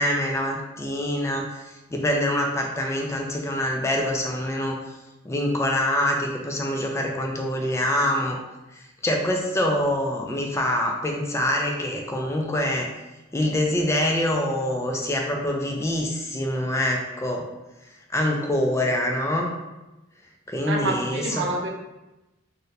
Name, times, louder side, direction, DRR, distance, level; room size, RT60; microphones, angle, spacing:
voice 1, 0.0-1.5 1.9-4.8 5.3-8.4 9.0-12.9 13.3-17.5 18.1-19.5 20.5-21.5, left 1 dB, 15° left, 0 dB, 0.3 m, -25 dB
voice 2, 20.7-21.7, right 2 dB, 60° right, 0 dB, 0.5 m, -27 dB
2.6 x 2.1 x 3.9 m, 1.0 s
head